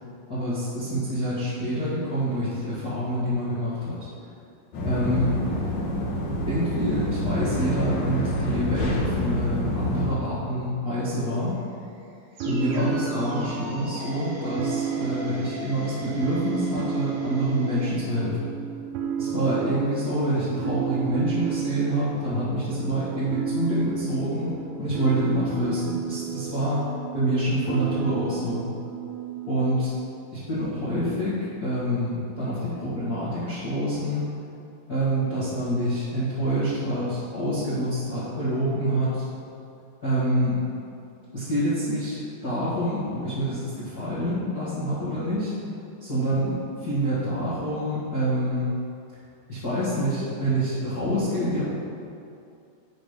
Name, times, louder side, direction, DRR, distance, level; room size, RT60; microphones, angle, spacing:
voice 1, 0.3-4.0 4.8-5.4 6.5-11.5 12.4-18.4 19.2-24.5 24.8-26.8 27.1-28.7 29.5-29.9 30.3-34.2 34.9-39.2 40.0-40.6 41.3-45.5 46.0-48.7 49.5-51.7, equal, 40° left, -13 dB, 1.5 m, -26 dB
sound 1, 4.7-10.0, equal, 60° left, 2.1 m, -27 dB
sound 2, 11.6-17.9, equal, 60° right, 1.7 m, -41 dB
sound 3, 12.4-29.9, right 7 dB, 90° right, 2.5 m, -32 dB
10.5 x 4.0 x 5.1 m, 2.5 s
omnidirectional pair, 4.3 m